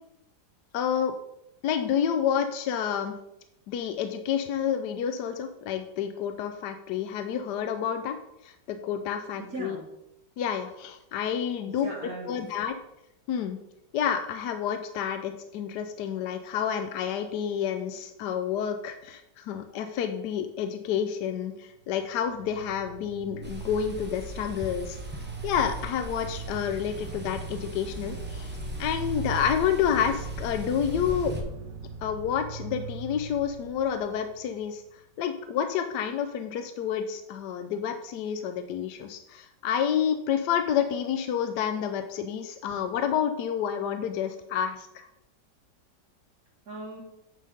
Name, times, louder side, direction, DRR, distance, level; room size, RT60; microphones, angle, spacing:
voice 1, 0.7-1.1 1.6-3.1 3.7-8.2 8.4-9.8 10.4-11.9 12.3-12.8 13.3-13.6 13.9-25.0 25.4-31.3 32.0-34.8 35.2-45.1, left 8 dB, 75° left, 7 dB, 1.2 m, -29 dB
voice 2, 9.4-9.9 11.7-12.6 46.7-47.0, right 2 dB, 60° right, -8 dB, 2.4 m, -39 dB
sound 1, 22.0-34.8, right 4 dB, 90° right, 1.5 m, -40 dB
sound 2, 23.4-31.4, equal, 15° right, 0.3 m, -40 dB
9.4 x 3.9 x 5.0 m, 0.83 s
omnidirectional pair, 1.9 m